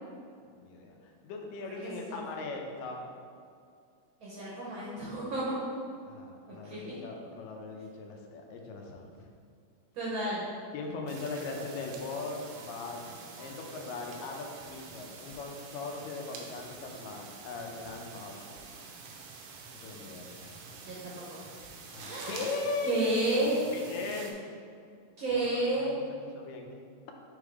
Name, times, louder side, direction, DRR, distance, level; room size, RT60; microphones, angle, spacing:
voice 1, 0.5-3.0 6.1-9.1 10.7-18.7 19.8-21.3 21.9-23.0 23.7-24.3 25.3-25.5 25.8-26.0 26.3-26.7, left 3 dB, 90° left, 1 dB, 2.4 m, -39 dB
voice 2, 1.7-2.4 4.2-5.5 6.6-7.0 9.9-10.4 20.8-21.4 22.0-22.5 22.8-23.6 25.2-25.9, right 2 dB, 65° right, -7 dB, 1.2 m, -32 dB
sound 1, 11.1-24.3, right 4 dB, 90° right, 2.4 m, -47 dB
6.5 x 3.5 x 4.7 m, 2.3 s
omnidirectional pair, 3.8 m